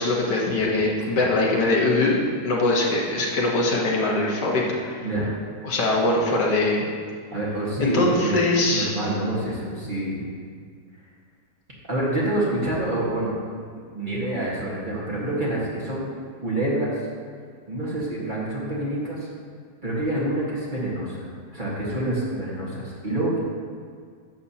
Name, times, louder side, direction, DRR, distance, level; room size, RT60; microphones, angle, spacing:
voice 1, 0.0-2.2 2.4-5.0 5.6-6.8 7.8-8.9, left 2 dB, 75° left, -2 dB, 1.8 m, -22 dB
voice 2, 5.0-5.3 7.3-8.4 8.7-10.3 11.9-13.3 13.9-16.1 16.4-16.9 17.7-19.3 19.8-21.3 21.5-23.4, right 1 dB, 30° right, -6 dB, 1.7 m, -27 dB
11.0 x 7.4 x 2.8 m, 2.1 s
omnidirectional pair, 1.9 m